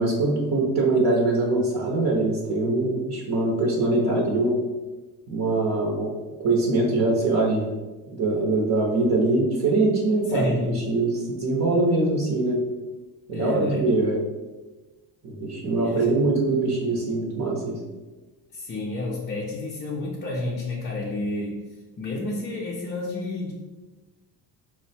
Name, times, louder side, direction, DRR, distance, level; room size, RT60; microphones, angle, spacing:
voice 1, 0.0-4.6 5.3-6.1 6.4-7.7 8.1-12.6 13.3-14.2 15.2-17.8, right 2 dB, 45° right, -2 dB, 0.8 m, -23 dB
voice 2, 10.3-10.9 13.3-13.9 15.8-16.2 18.5-21.6 22.0-23.5, left 2 dB, 30° left, -4 dB, 0.5 m, -30 dB
4.3 x 2.1 x 4.1 m, 1.2 s
cardioid pair, 130°, 38 cm